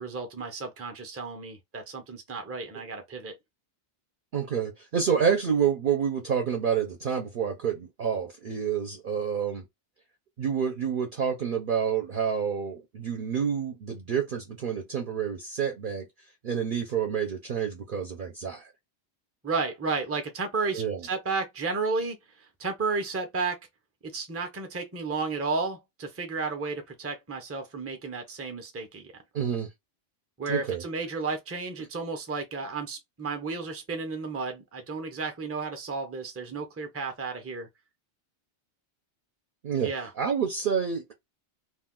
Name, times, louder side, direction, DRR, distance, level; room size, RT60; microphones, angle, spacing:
voice 1, 0.0-3.4 19.4-22.2 22.6-23.6 24.0-29.2 30.4-37.7 39.8-40.1, right 4 dB, 20° right, 0.4 m, -32 dB
voice 2, 4.3-9.6 10.4-16.1 16.4-18.7 20.7-21.0 29.3-29.7 30.5-30.8 39.6-39.9 40.2-41.1, right 7 dB, 55° right, 0.7 m, -28 dB
2.5 x 2.3 x 3.6 m
omnidirectional pair, 1.2 m